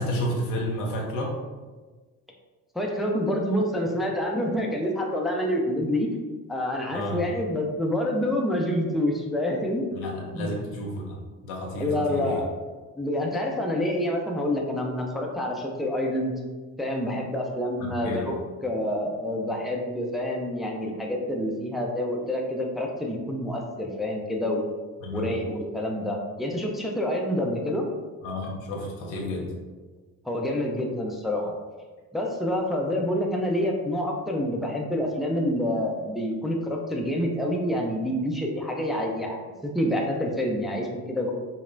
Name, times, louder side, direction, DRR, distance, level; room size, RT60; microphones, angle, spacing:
voice 1, 0.0-1.4 6.9-7.2 9.9-12.4 17.8-18.2 25.0-25.3 28.2-29.5, left 1 dB, 85° left, -1 dB, 0.8 m, -31 dB
voice 2, 2.7-6.1 6.5-10.5 11.8-12.5 13.0-16.3 16.8-18.3 18.6-24.6 25.1-27.9 30.2-31.5 32.1-41.3, left 1 dB, ahead, -1 dB, 0.6 m, -27 dB
5.3 x 2.1 x 2.6 m, 1.3 s
hypercardioid pair, 55°, 41 cm